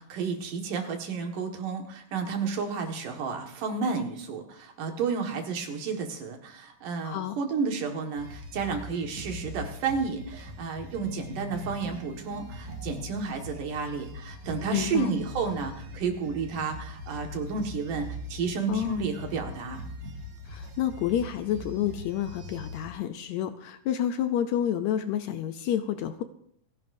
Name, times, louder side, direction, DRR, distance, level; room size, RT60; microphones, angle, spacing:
voice 1, 0.0-19.8, right 5 dB, 80° right, 3 dB, 3.3 m, -31 dB
voice 2, 7.0-7.4 14.7-15.1 18.7-19.0 20.5-26.2, left 10 dB, 75° left, 9 dB, 1.8 m, -29 dB
sound 1, 8.2-22.9, left 1 dB, 60° right, 3.4 m, -41 dB
28.0 x 11.0 x 2.7 m, 0.68 s
omnidirectional pair, 3.7 m